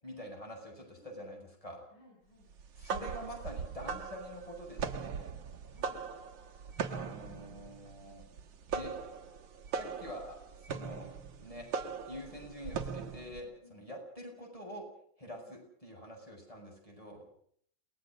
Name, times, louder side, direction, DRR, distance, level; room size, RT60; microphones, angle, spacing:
voice 1, 0.0-1.9 2.8-5.3 6.9-8.2 8.7-8.9 9.8-11.1 11.4-11.7 12.1-14.8 15.2-17.3, equal, 15° left, 1 dB, 7.6 m, -46 dB
voice 2, 1.9-2.5 5.7-6.0 13.3-13.9 15.3-15.5, equal, 80° left, -2 dB, 8.1 m, -61 dB
sound 1, 2.6-13.4, right 6 dB, 70° right, 2.0 m, -39 dB
28.5 x 18.5 x 6.3 m, 0.63 s
omnidirectional pair, 2.2 m